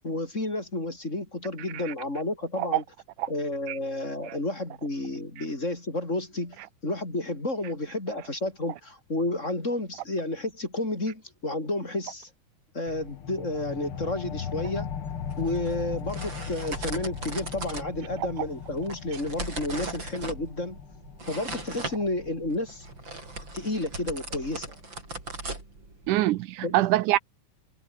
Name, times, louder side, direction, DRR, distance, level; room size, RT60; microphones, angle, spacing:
voice 1, 0.0-2.8 3.3-6.6 6.8-12.3 12.7-14.9 15.4-20.8 21.3-22.9 23.5-24.8 26.6-26.8, left 2 dB, 20° left, 4.8 m, -31 dB
sound 1, 12.9-23.9, left 8 dB, 50° left, 2.4 m, -39 dB
sound 2, 15.0-26.2, right 2 dB, 35° right, 8.0 m, -39 dB
voice 2, 26.1-27.2, right 16 dB, 85° right, 2.2 m, -25 dB
omnidirectional pair, 3.6 m